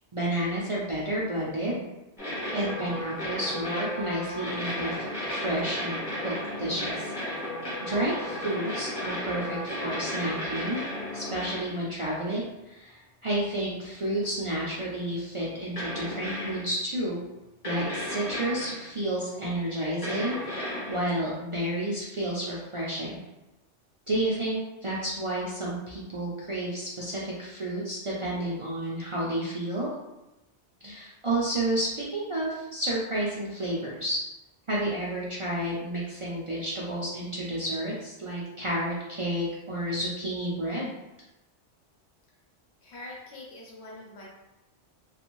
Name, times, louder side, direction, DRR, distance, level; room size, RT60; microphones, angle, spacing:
voice 1, 0.1-1.8 2.5-4.9 5.2-6.0 6.2-7.1 7.4-7.5 7.8-10.8 11.1-17.2 17.6-23.2 24.1-29.9 30.8-34.2 34.7-40.9, right 1 dB, 55° right, -6 dB, 0.3 m, -31 dB
sound 1, 2.2-11.9 14.2-14.3 15.8-16.7 17.6-18.9 20.0-21.1, left 1 dB, 30° left, 1.2 m, -34 dB
voice 2, 42.8-44.3, left 2 dB, 70° left, -4 dB, 0.9 m, -44 dB
2.5 x 2.4 x 3.0 m, 0.97 s
omnidirectional pair, 1.2 m